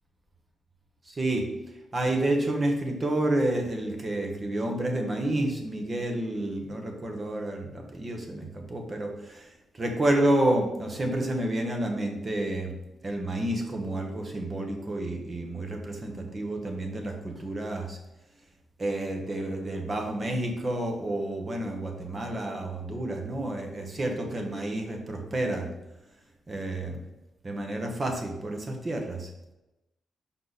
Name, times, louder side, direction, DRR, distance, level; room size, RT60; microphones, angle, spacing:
voice 1, 1.1-1.5 1.9-12.7 13.0-18.0 18.8-25.7 26.5-27.0 27.4-29.3, right 1 dB, 25° right, 3 dB, 1.0 m, -29 dB
6.5 x 5.4 x 4.1 m, 0.94 s
wide cardioid pair, 170°, 0 cm